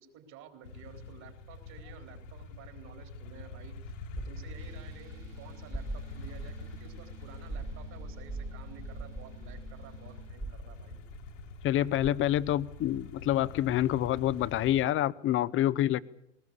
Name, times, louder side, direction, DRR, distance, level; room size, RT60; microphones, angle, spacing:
voice 1, 0.0-11.0, right 7 dB, 45° right, 6 dB, 4.2 m, -52 dB
sound 1, 0.6-14.8, left 3 dB, 75° left, 2.3 m, -45 dB
sound 2, 3.6-13.1, right 2 dB, 5° right, 1.9 m, -44 dB
sound 3, 4.6-10.3, right 5 dB, 85° right, 3.4 m, -56 dB
voice 2, 11.6-16.0, left 13 dB, 35° left, 15 dB, 0.8 m, -27 dB
20.5 x 19.0 x 8.4 m, 0.80 s
hypercardioid pair, 95°, 38 cm